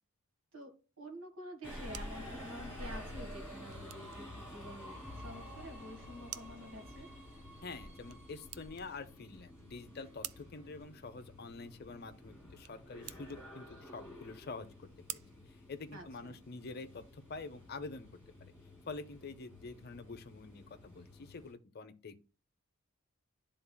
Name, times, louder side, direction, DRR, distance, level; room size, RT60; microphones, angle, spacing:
voice 1, 0.5-7.1 15.9-16.4, equal, 65° right, 1.6 m, -49 dB
sound 1, 1.5-16.4, right 13 dB, 85° right, 0.4 m, -53 dB
Subway metro underground, 1.6-21.5, left 1 dB, 5° right, 2.6 m, -50 dB
Acoustic guitar, 2.8-10.8, left 2 dB, 50° right, 2.5 m, -69 dB
voice 2, 7.6-15.2 15.5-18.5 18.9-22.2, left 3 dB, 45° left, 0.6 m, -47 dB
11.5 x 3.8 x 2.2 m
head